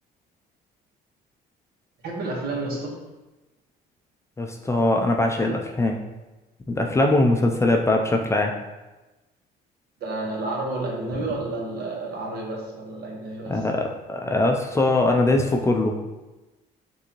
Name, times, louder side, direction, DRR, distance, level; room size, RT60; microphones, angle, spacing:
voice 1, 2.0-2.9 10.0-13.7, right 2 dB, 65° right, -2 dB, 1.4 m, -30 dB
voice 2, 4.4-6.0 6.7-8.5 13.5-16.0, left 2 dB, 15° left, 2 dB, 0.4 m, -21 dB
6.4 x 2.8 x 3.0 m, 1.1 s
cardioid pair, 110°, 17 cm